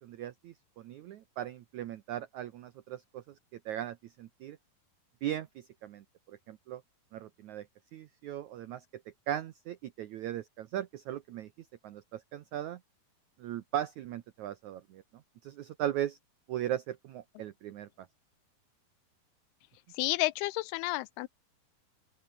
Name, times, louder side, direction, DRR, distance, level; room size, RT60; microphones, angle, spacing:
voice 1, 0.0-3.2 3.6-4.6 5.2-6.8 7.1-7.7 7.9-8.8 9.3-11.5 11.8-12.8 13.4-15.0 15.4-16.2 16.5-17.9, right 12 dB, 80° right, 1.7 m, -38 dB
voice 2, 19.9-21.3, left 19 dB, 85° left, 2.5 m, -31 dB
open air
omnidirectional pair, 4.7 m